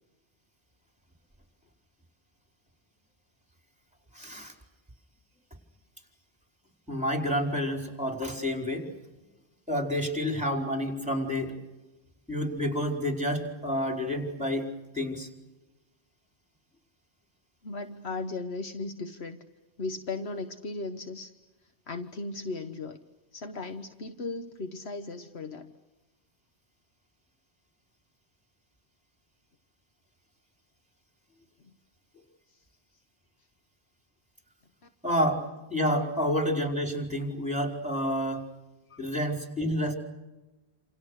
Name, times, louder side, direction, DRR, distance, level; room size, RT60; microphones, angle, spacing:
voice 1, 4.1-4.5 6.9-8.9 9.7-11.5 12.3-14.7 14.9-15.3 35.0-38.4 39.0-39.9, equal, 5° right, 3 dB, 4.9 m, -29 dB
voice 2, 17.6-19.4 19.8-21.3 21.9-23.0 23.3-25.7 38.9-39.0, left 3 dB, 75° left, 7 dB, 1.5 m, -36 dB
28.5 x 28.5 x 6.6 m, 1.1 s
omnidirectional pair, 1.1 m